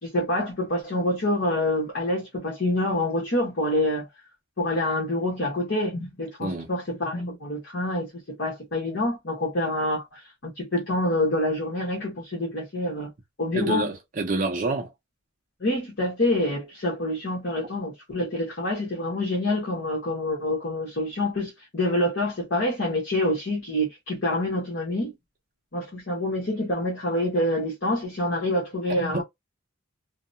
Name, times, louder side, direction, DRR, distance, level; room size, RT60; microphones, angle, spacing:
voice 1, 0.0-4.1 4.6-13.1 13.4-13.9 15.6-25.1 25.7-29.2, left 1 dB, 55° left, 1.0 m, -27 dB
voice 2, 13.5-14.9 29.1-29.2, right 3 dB, 40° right, 0.5 m, -27 dB
2.7 x 2.1 x 2.6 m
head